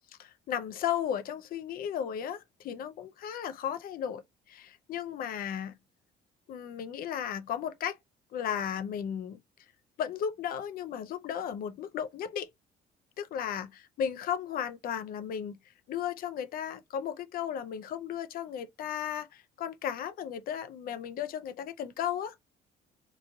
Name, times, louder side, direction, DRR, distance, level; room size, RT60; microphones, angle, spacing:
voice 1, 0.2-4.2 4.5-5.7 6.5-8.0 8.3-9.4 10.0-12.5 13.2-15.6 15.9-22.3, left 9 dB, 60° left, 0.5 m, -35 dB
3.1 x 2.3 x 3.6 m
cardioid pair, 110°, 17 cm